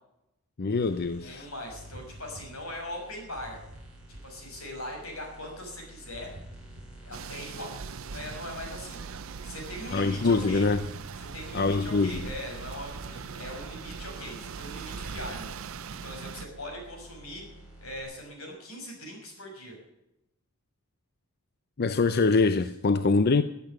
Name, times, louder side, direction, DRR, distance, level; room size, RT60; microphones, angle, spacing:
voice 1, 0.6-1.5 9.9-10.8 11.5-12.2 21.8-23.4, left 3 dB, 50° left, 12 dB, 0.6 m, -24 dB
sound 1, 0.8-18.0, right 1 dB, 5° right, 5.0 m, -51 dB
voice 2, 1.2-3.6 4.1-6.3 7.0-10.7 11.3-17.4 17.8-19.8, left 1 dB, 85° left, 2 dB, 6.0 m, -41 dB
sound 2, 1.7-2.9 3.3-4.7 6.1-7.3 7.7-9.1 10.5-11.7 12.1-13.4 14.9-15.2, equal, 55° right, 3.1 m, -49 dB
sound 3, 7.1-16.5, right 6 dB, 70° right, 0.6 m, -41 dB
15.0 x 8.5 x 9.7 m, 0.87 s
head